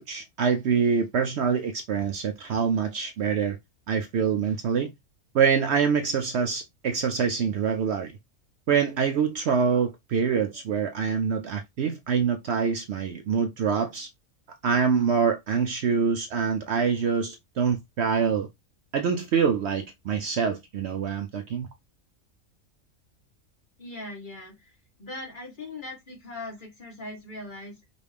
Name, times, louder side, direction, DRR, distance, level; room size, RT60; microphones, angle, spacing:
voice 1, 0.0-3.6 3.9-4.9 5.3-8.1 8.7-14.1 14.6-18.5 18.9-21.7, right 6 dB, 65° right, 0.8 m, -25 dB
voice 2, 23.8-24.7 25.0-27.8, left 2 dB, 40° left, 1.6 m, -40 dB
5.1 x 2.6 x 3.4 m
omnidirectional pair, 1.4 m